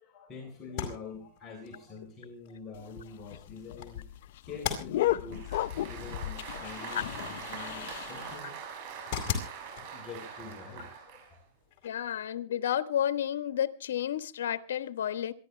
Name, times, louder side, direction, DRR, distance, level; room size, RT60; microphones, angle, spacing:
voice 1, 0.0-4.1 4.4-8.7 8.9-9.1 9.7-11.4, left 4 dB, 25° left, 3.7 m, -46 dB
sound 1, 0.6-12.3, left 8 dB, 45° left, 4.6 m, -42 dB
sound 2, 2.7-8.4, left 14 dB, 70° left, 0.7 m, -34 dB
Applause, 5.3-11.3, right 7 dB, 55° right, 7.0 m, -43 dB
voice 2, 11.8-15.3, left 10 dB, 90° left, 1.1 m, -31 dB
27.0 x 11.5 x 3.2 m
supercardioid pair, 140°, 0 cm